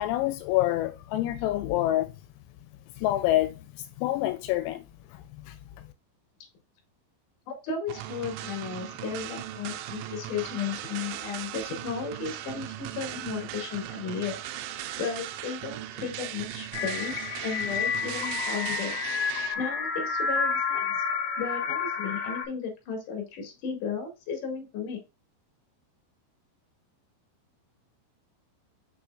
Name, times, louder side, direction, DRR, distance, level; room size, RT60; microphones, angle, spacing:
voice 1, 0.0-2.1 3.0-3.6 4.0-4.9 5.1-5.6, left 15 dB, 85° left, 3.2 m, -27 dB
voice 2, 7.5-14.4 15.0-19.0 19.2-21.0 21.4-25.0, left 6 dB, 50° left, 2.9 m, -35 dB
sound 1, 7.9-19.5, right 13 dB, 80° right, 2.9 m, -38 dB
sound 2, 16.7-22.4, left 6 dB, 70° left, 1.8 m, -30 dB
7.1 x 5.9 x 2.4 m
omnidirectional pair, 6.0 m